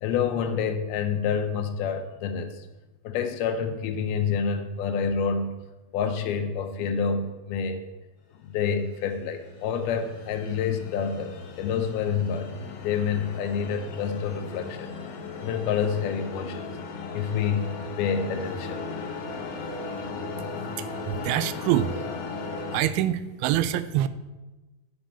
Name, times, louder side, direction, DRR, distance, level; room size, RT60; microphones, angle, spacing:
voice 1, 0.0-2.7 3.0-5.6 5.9-7.8 8.4-14.9 15.4-16.7 17.1-17.7 18.0-18.8, left 6 dB, 80° left, 6 dB, 2.7 m, -28 dB
sound 1, 8.7-22.8, left 4 dB, 60° left, 2.3 m, -37 dB
voice 2, 21.1-21.9 22.7-24.1, right 12 dB, 85° right, 13 dB, 2.5 m, -25 dB
9.8 x 6.2 x 6.9 m, 1.1 s
omnidirectional pair, 4.4 m